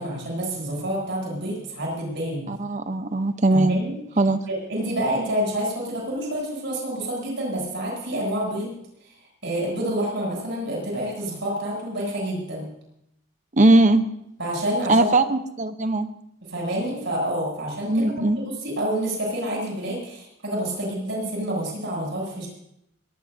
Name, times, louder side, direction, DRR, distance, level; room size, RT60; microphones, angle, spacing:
voice 1, 0.0-2.5 3.5-4.0 4.5-8.7 9.4-12.7 14.4-15.1 16.4-18.1 18.4-22.5, right 1 dB, 55° right, -2 dB, 7.9 m, -28 dB
voice 2, 2.5-3.8 4.2-4.4 13.5-14.1 14.9-16.1 17.9-18.4, right 2 dB, 35° right, 10 dB, 0.8 m, -19 dB
22.0 x 19.0 x 2.7 m, 0.78 s
head